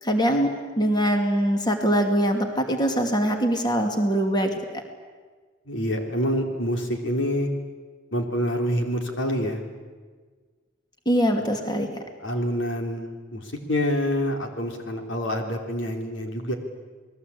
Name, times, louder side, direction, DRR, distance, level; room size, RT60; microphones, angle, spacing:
voice 1, 0.0-4.5 11.1-11.9, equal, 25° left, 4 dB, 2.6 m, -23 dB
voice 2, 5.7-7.5 8.1-9.6 12.2-13.4 13.7-16.5, equal, 90° left, 4 dB, 3.5 m, -26 dB
28.5 x 20.5 x 8.6 m, 1.5 s
head